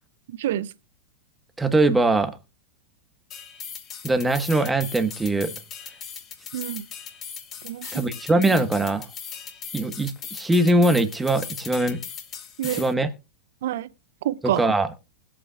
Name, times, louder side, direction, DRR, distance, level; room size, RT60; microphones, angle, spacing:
voice 1, 0.3-0.7 6.5-6.9 7.6-8.1 12.6-12.8 13.6-13.9 14.2-14.6, right 12 dB, 65° right, 0.6 m, -27 dB
voice 2, 1.6-2.4 4.0-5.5 7.9-9.0 9.7-12.0 12.7-13.1 14.6-14.9, right 2 dB, 10° right, 1.3 m, -21 dB
sound 1, 3.3-12.9, left 7 dB, 35° left, 2.9 m, -39 dB
20.5 x 8.6 x 2.4 m
hypercardioid pair, 110°, 0 cm